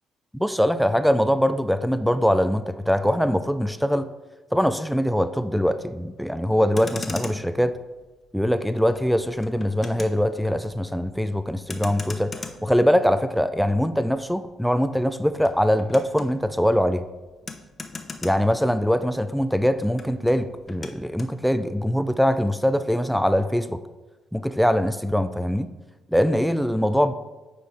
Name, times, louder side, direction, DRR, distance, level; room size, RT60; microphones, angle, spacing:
voice 1, 0.3-4.1 4.5-7.8 8.3-17.0 18.2-23.8 24.3-25.7 26.1-27.1, equal, ahead, 11 dB, 0.4 m, -22 dB
Motor vehicle (road), 6.6-19.2 19.4-21.4, left 4 dB, 30° left, 0.8 m, -40 dB
8.8 x 4.3 x 4.8 m, 1.2 s
cardioid pair, 90°, 0 cm